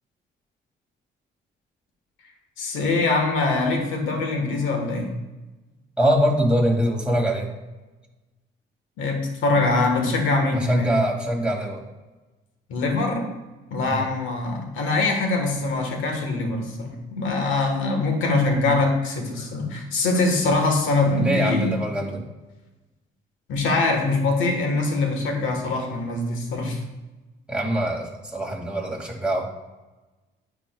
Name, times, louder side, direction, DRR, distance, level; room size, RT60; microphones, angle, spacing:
voice 1, 2.6-5.1 9.0-10.9 12.7-13.2 13.7-21.7 23.5-26.8, left 3 dB, 90° left, 3 dB, 1.4 m, -23 dB
voice 2, 6.0-7.5 10.5-11.8 13.9-14.1 21.2-22.2 25.4-25.6 27.5-29.5, equal, 5° right, -1 dB, 2.2 m, -23 dB
10.0 x 4.8 x 2.3 m, 1.1 s
cardioid pair, 90°, 20 cm